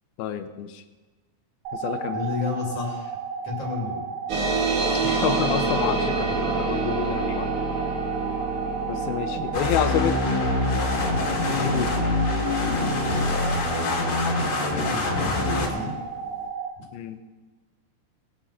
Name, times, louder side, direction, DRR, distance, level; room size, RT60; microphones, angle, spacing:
voice 1, 0.2-0.8 1.7-2.2 5.0-7.5 8.9-10.2 11.5-12.1 16.9-17.2, left 9 dB, 90° left, 9 dB, 2.8 m, -29 dB
sound 1, 1.7-16.7, right 6 dB, 85° right, 3.4 m, -33 dB
voice 2, 2.1-3.2 3.4-4.1 6.4-6.6 8.2-8.4 9.0-9.6 14.6-16.0, left 3 dB, 45° left, -2 dB, 3.7 m, -32 dB
sound 2, 4.3-15.2, right 3 dB, 60° right, 3.0 m, -29 dB
sound 3, 9.5-15.7, left 3 dB, 65° left, 4.2 m, -25 dB
21.0 x 9.7 x 4.4 m, 1.2 s
omnidirectional pair, 4.2 m